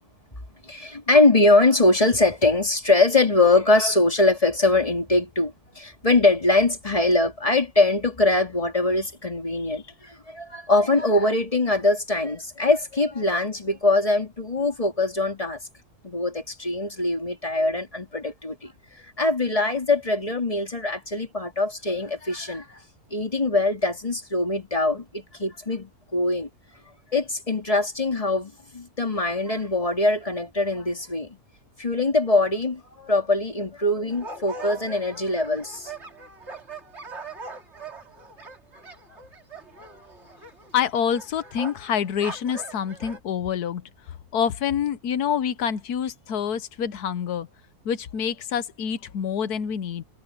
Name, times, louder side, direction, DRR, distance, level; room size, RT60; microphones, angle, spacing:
voice 1, 0.6-15.6 16.0-18.7 19.2-22.7 23.1-26.5 27.1-31.4 31.8-35.9, left 2 dB, 20° left, 2.7 m, -22 dB
sound 1, 34.1-43.2, right 3 dB, 45° right, 2.9 m, -41 dB
voice 2, 40.7-43.9 44.3-47.5 47.8-50.0, left 8 dB, 85° left, 1.5 m, -27 dB
omnidirectional pair, 1.6 m